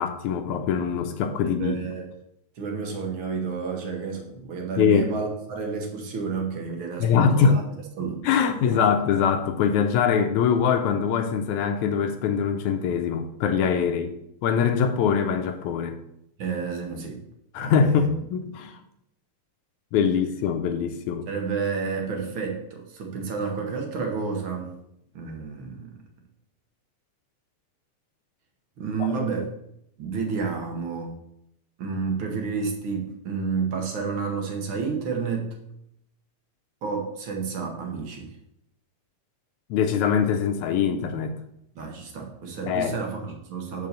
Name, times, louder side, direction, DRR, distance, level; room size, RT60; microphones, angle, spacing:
voice 1, 0.0-1.8 4.8-5.1 7.0-7.6 8.2-14.1 14.4-16.0 17.5-18.8 19.9-21.3 29.0-29.1 39.7-41.3 42.7-43.0, left 7 dB, 80° left, 6 dB, 1.9 m, -23 dB
voice 2, 1.4-2.1 2.6-7.5 8.0-8.2 16.4-17.2 17.6-18.2 21.3-24.7 25.1-26.0 28.8-29.5 30.0-31.2 31.8-35.5 36.8-38.3 41.7-43.9, right 5 dB, 60° right, 2 dB, 1.5 m, -30 dB
5.4 x 5.3 x 6.6 m, 0.77 s
omnidirectional pair, 3.5 m